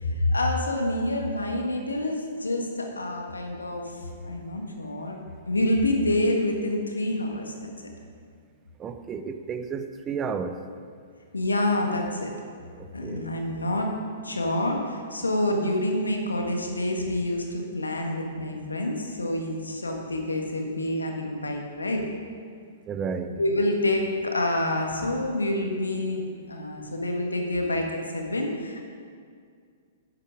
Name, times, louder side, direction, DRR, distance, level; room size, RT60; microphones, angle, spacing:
voice 1, 0.0-3.9 4.2-5.2 5.5-7.7 11.3-12.3 12.9-14.0 14.2-22.0 23.4-28.8, left 1 dB, 85° left, 2 dB, 1.6 m, -27 dB
voice 2, 8.8-10.6 12.7-13.3 22.9-23.4, right 6 dB, 25° right, 9 dB, 0.6 m, -32 dB
11.0 x 8.7 x 4.8 m, 2.1 s
figure-of-eight pair, 115°, 0 cm